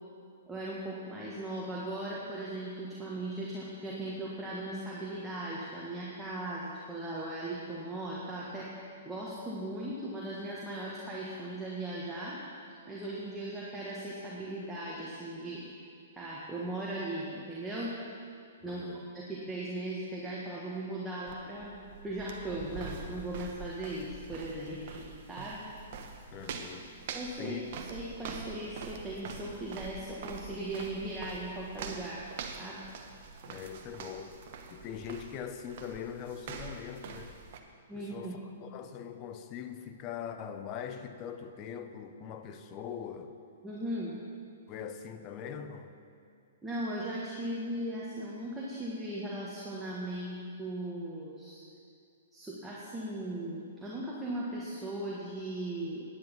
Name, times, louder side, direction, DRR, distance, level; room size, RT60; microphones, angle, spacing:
voice 1, 0.5-12.4 12.9-15.6 16.2-17.9 18.6-18.9 19.1-21.7 22.0-24.9 25.3-25.6 27.1-27.6 27.9-32.3 32.6-32.8 37.9-38.5 43.6-44.2 46.6-51.6 52.3-56.0, right 1 dB, 10° right, -7 dB, 1.8 m, -38 dB
voice 2, 18.6-19.1 26.3-27.1 27.4-27.7 33.4-34.4 34.7-37.3 37.9-43.3 44.7-45.9, left 8 dB, 35° left, 8 dB, 0.8 m, -42 dB
sound 1, 21.3-37.6, right 5 dB, 55° right, 1.0 m, -45 dB
10.5 x 9.7 x 5.5 m, 2.4 s
hypercardioid pair, 125°, 0 cm